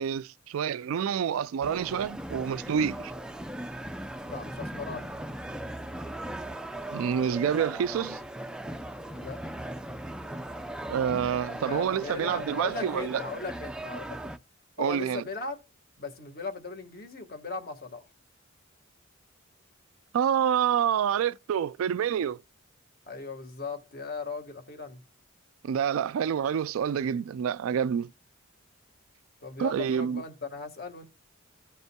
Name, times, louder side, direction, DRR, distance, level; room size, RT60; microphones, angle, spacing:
voice 1, 0.0-3.1 6.9-8.2 10.9-13.2 14.8-15.2 20.1-22.4 25.6-28.1 29.6-30.2, right 8 dB, 75° right, 0.3 m, -27 dB
sound 1, 1.6-14.4, right 1 dB, 5° right, 0.4 m, -38 dB
voice 2, 4.3-5.1 9.1-9.4 11.7-14.3 14.8-15.6 16.0-18.0 23.1-25.0 29.4-31.1, left 4 dB, 45° left, 1.5 m, -38 dB
15.5 x 5.3 x 2.2 m
head